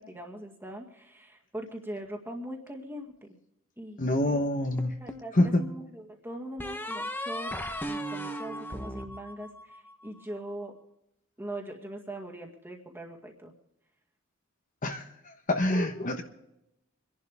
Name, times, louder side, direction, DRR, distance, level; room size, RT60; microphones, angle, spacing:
voice 1, 0.0-3.1 3.8-4.0 4.3-4.4 5.0-7.6 7.8-10.7 11.4-13.5, right 1 dB, 10° right, 1 dB, 2.0 m, -41 dB
voice 2, 4.0-4.9 5.3-5.6 14.8-16.2, left 1 dB, 40° left, 5 dB, 1.1 m, -26 dB
sound 1, 4.8-5.6 6.6-9.9, equal, 10° left, 1.0 m, -37 dB
27.0 x 11.0 x 3.5 m, 0.84 s
head